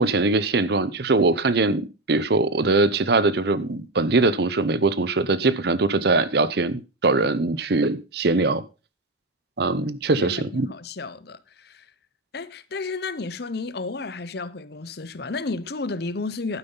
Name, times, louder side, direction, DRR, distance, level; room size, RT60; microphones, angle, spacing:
voice 1, 0.0-1.8 2.1-8.6 9.6-10.7, right 3 dB, 60° right, 0.8 m, -21 dB
voice 2, 10.2-11.8 12.3-16.6, left 3 dB, 55° left, 0.8 m, -32 dB
12.0 x 9.4 x 3.9 m
head